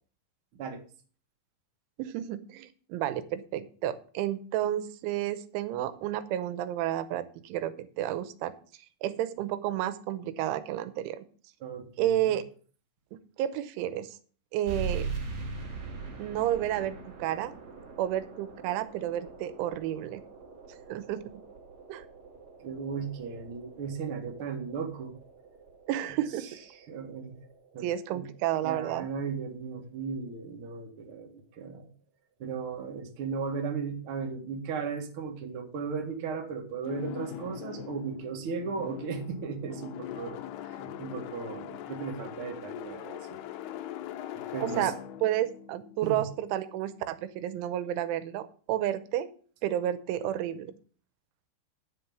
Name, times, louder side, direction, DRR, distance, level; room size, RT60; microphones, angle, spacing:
voice 1, 2.0-11.3 12.0-12.4 13.1-14.2 14.5-15.1 16.2-17.6 18.0-20.2 20.7-21.4 21.9-22.1 25.9-26.5 27.8-29.1 44.6-49.3 49.6-50.7, right 12 dB, 85° right, 13 dB, 3.2 m, -31 dB
voice 2, 11.6-12.2 22.6-25.1 26.9-27.3 27.7-27.8 28.1-28.2 28.6-31.9 32.4-40.4 40.6-43.4 44.3-44.9 46.0-46.2, right 5 dB, 65° right, 2 dB, 1.3 m, -36 dB
sound 1, 14.6-29.7, right 4 dB, 45° right, 2.6 m, -42 dB
sound 2, 36.8-46.8, left 11 dB, 85° left, 2.3 m, -41 dB
10.0 x 5.9 x 7.0 m, 0.42 s
omnidirectional pair, 5.5 m